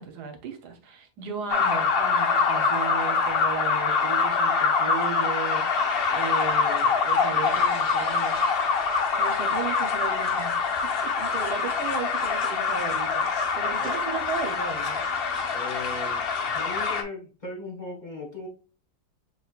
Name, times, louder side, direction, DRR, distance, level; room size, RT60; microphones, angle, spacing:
voice 1, 0.0-8.4 9.2-15.0, right 6 dB, 75° right, 1.4 m, -36 dB
sound 1, 1.5-17.0, left 5 dB, 55° left, 0.6 m, -25 dB
voice 2, 15.5-16.2 16.5-18.5, left 2 dB, 30° left, 1.5 m, -37 dB
6.2 x 2.9 x 2.4 m
omnidirectional pair, 1.8 m